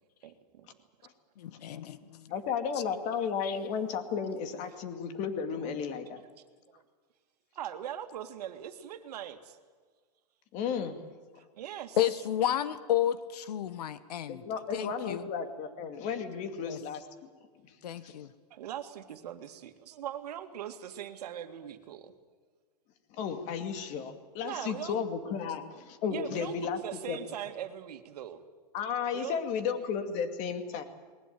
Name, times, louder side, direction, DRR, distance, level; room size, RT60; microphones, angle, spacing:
voice 1, 0.2-0.7 2.3-2.4 5.6-5.7 6.7-6.8 7.6-9.6 11.6-12.0 18.5-22.1 24.4-25.0 26.1-28.4 29.1-29.4, right 10 dB, 75° right, 7 dB, 2.2 m, -41 dB
voice 2, 1.4-2.3 3.4-3.6 12.0-14.4 14.7-15.3 16.6-16.8 17.8-18.3, left 11 dB, 80° left, 14 dB, 1.3 m, -31 dB
voice 3, 2.3-6.2 10.5-11.0 14.3-17.1 17.6-17.7 18.0-18.1 23.1-26.8 27.1-27.2 28.7-30.8, left 6 dB, 35° left, 7 dB, 2.4 m, -34 dB
20.0 x 20.0 x 9.3 m, 1.5 s
supercardioid pair, 155°, 20 cm